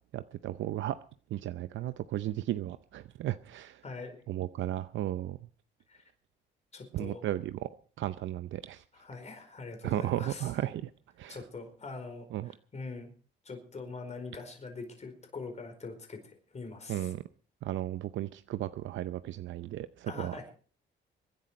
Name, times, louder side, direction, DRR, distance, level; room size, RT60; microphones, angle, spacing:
voice 1, 0.1-1.0 1.3-3.8 4.3-5.4 6.9-7.7 8.0-8.8 9.8-10.9 11.2-11.4 12.3-12.5 16.9-17.2 17.6-20.3, right 13 dB, 75° right, 0.6 m, -34 dB
voice 2, 3.8-4.2 5.9-6.0 6.7-7.2 8.9-10.5 11.3-13.1 13.4-17.1 20.1-20.5, left 3 dB, 35° left, 4.6 m, -43 dB
23.5 x 10.5 x 4.4 m
cardioid pair, 90°, 20 cm